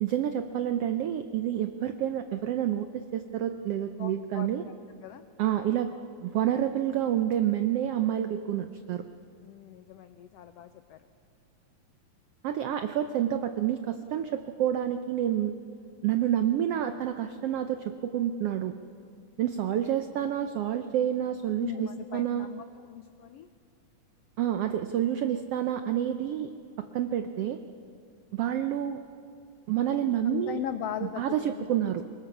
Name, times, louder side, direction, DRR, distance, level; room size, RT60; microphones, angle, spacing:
voice 1, 0.0-4.6 5.4-5.9 6.2-9.0 12.4-15.5 16.0-18.7 19.4-22.5 24.4-26.5 26.8-27.6 28.3-29.0 29.7-30.6 31.2-32.0, right 10 dB, 85° right, 8 dB, 1.3 m, -28 dB
voice 2, 4.0-4.8 5.0-5.2 9.4-11.0 21.6-23.5 30.2-32.0, left 10 dB, 90° left, 10 dB, 1.4 m, -39 dB
24.5 x 22.0 x 7.1 m, 2.5 s
omnidirectional pair, 3.6 m